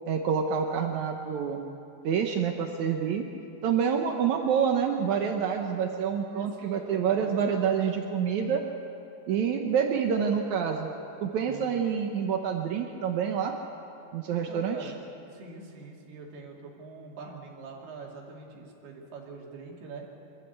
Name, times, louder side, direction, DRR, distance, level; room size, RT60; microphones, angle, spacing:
voice 1, 0.1-1.6 2.0-3.3 3.6-8.6 9.3-10.9 11.2-13.6 14.1-14.9, right 7 dB, 90° right, 3 dB, 1.6 m, -27 dB
voice 2, 6.3-7.5 11.4-11.8 14.3-15.0 15.3-20.1, right 4 dB, 70° right, -1 dB, 4.6 m, -44 dB
25.5 x 13.5 x 8.2 m, 2.7 s
omnidirectional pair, 4.9 m